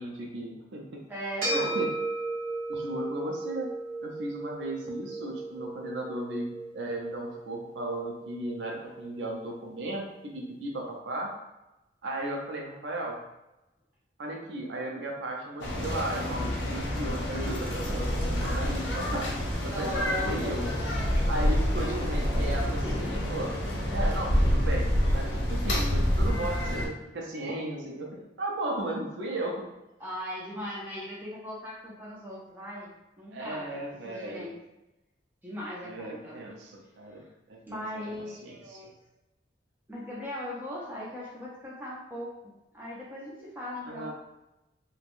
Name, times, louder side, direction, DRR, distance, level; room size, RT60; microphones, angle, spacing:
voice 1, 0.0-1.1 1.5-1.9 2.7-3.7 4.0-11.3 12.0-13.2 14.2-19.3 19.6-20.7 21.3-23.5 23.9-24.9 25.1-29.7 33.3-34.5 35.8-37.8 38.4-38.8 43.9-44.1, right 1 dB, 80° right, -1 dB, 0.5 m, -35 dB
voice 2, 1.1-1.8 19.6-22.0 22.8-23.3 30.0-32.9 33.2-33.7 34.0-34.5 35.4-36.4 37.1-37.3 37.6-38.9 39.9-42.3 42.7-44.1, equal, 10° right, -7 dB, 0.5 m, -39 dB
sound 1, 1.4-10.0, right 2 dB, 50° right, 1.3 m, -36 dB
sound 2, 15.6-26.9, equal, 80° left, 0.6 m, -28 dB
3.2 x 2.2 x 2.5 m, 0.95 s
head